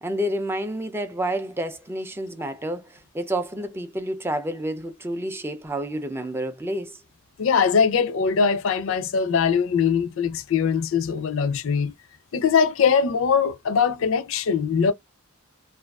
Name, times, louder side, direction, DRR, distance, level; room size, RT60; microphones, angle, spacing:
voice 1, 0.0-7.0, right 1 dB, 10° right, 0.3 m, -29 dB
voice 2, 7.4-11.9 12.3-14.9, left 6 dB, 65° left, 0.4 m, -21 dB
2.4 x 2.3 x 2.2 m
head